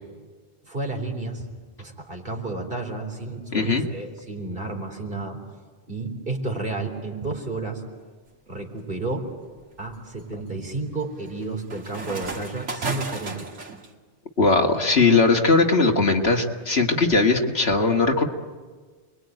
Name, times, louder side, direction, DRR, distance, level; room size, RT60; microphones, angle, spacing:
voice 1, 0.7-1.4 1.8-5.4 5.9-7.8 8.5-9.3 9.8-13.5, right 2 dB, 50° right, 2 dB, 4.1 m, -31 dB
voice 2, 3.5-3.8 14.4-18.2, left 3 dB, 60° left, 3 dB, 2.2 m, -19 dB
sound 1, 8.3-8.7 9.3-13.9, right 3 dB, 90° right, 2.4 m, -35 dB
29.5 x 22.0 x 9.2 m, 1.5 s
omnidirectional pair, 1.2 m